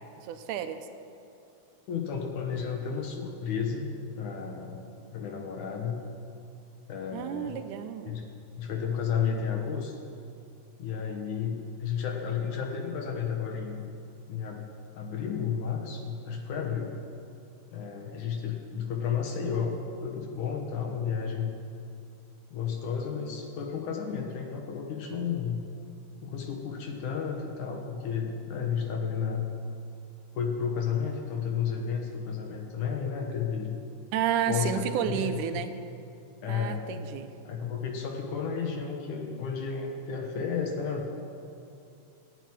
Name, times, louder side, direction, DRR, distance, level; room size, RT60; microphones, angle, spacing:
voice 1, 0.2-0.8 7.1-8.2 34.1-35.7 36.5-37.3, right 9 dB, 85° right, 8 dB, 2.3 m, -31 dB
voice 2, 1.9-3.9 4.2-4.8 5.1-6.0 6.9-7.6 8.1-8.3 8.5-10.0 10.8-13.9 14.3-14.7 14.9-17.0 17.7-21.5 22.5-25.6 26.2-29.5 30.3-33.8 34.5-35.4 36.4-36.9 37.4-41.1, left 6 dB, 80° left, 2 dB, 2.7 m, -32 dB
14.0 x 9.1 x 10.0 m, 2.6 s
omnidirectional pair, 3.6 m